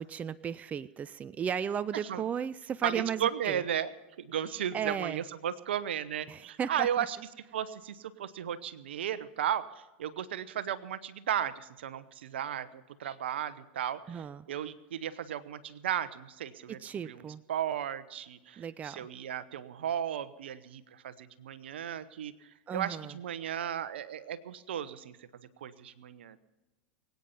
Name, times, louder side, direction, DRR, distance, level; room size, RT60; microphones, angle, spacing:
voice 1, 0.0-3.6 4.7-5.2 6.3-7.1 14.1-14.5 16.8-17.4 18.6-19.0 22.7-23.1, right 8 dB, 25° right, 16 dB, 0.5 m, -35 dB
voice 2, 2.8-3.9 4.2-7.2 7.5-16.8 17.0-25.3 25.6-26.4, right 9 dB, 80° right, 15 dB, 0.9 m, -35 dB
22.5 x 9.3 x 5.5 m, 1.1 s
hypercardioid pair, 95°, 6 cm